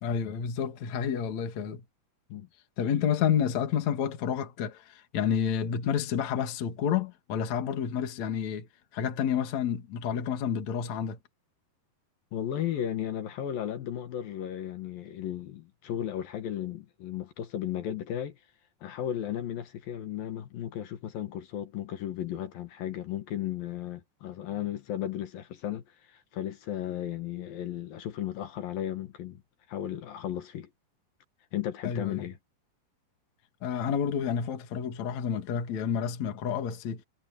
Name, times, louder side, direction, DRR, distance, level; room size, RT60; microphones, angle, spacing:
voice 1, 0.0-1.8 2.8-8.7 8.9-11.2 31.8-32.2 33.6-37.0, left 8 dB, 45° left, 3.0 m, -29 dB
voice 2, 12.3-18.4 18.8-29.4 29.7-30.7 31.5-32.4, left 11 dB, 65° left, 2.9 m, -35 dB
omnidirectional pair, 5.1 m